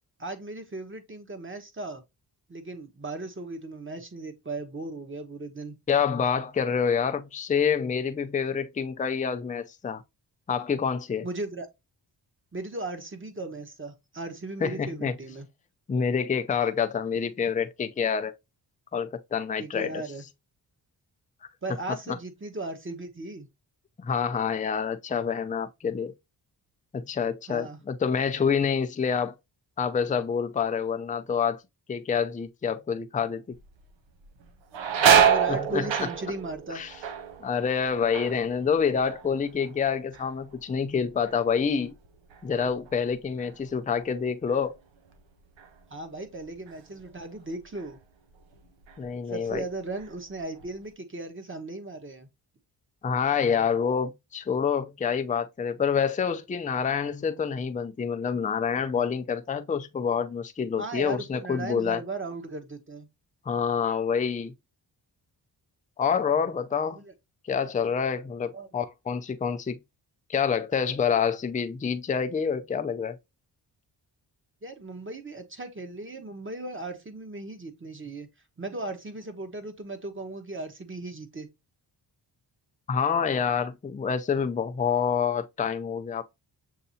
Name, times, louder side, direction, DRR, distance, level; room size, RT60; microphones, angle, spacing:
voice 1, 0.2-2.0 2.5-5.8 11.2-11.7 12.5-15.5 19.6-20.2 21.6-23.5 27.5-27.8 35.0-36.8 45.9-48.0 49.3-52.3 60.8-63.1 66.9-67.1 68.5-68.7 74.6-78.3 78.6-81.5, right 2 dB, 30° right, 1.1 m, -37 dB
voice 2, 5.9-10.0 10.5-11.3 14.6-15.2 15.9-18.4 18.9-20.0 24.0-26.1 26.9-29.3 29.8-31.6 31.9-33.4 35.5-35.9 36.7-36.9 37.4-41.9 42.4-44.8 49.0-49.6 53.0-62.0 63.5-64.5 66.0-67.0 67.5-69.8 70.3-73.2 82.9-86.2, left 6 dB, 20° left, 0.5 m, -27 dB
sound 1, 33.5-33.9 34.2-39.8 40.1-40.7 41.2-44.1 44.5-44.6 45.6-45.8 46.2-47.3 47.8-47.9 48.5-49.2 49.5-50.7, right 8 dB, 85° right, 0.8 m, -27 dB
6.7 x 2.7 x 2.7 m
cardioid pair, 70°, 44 cm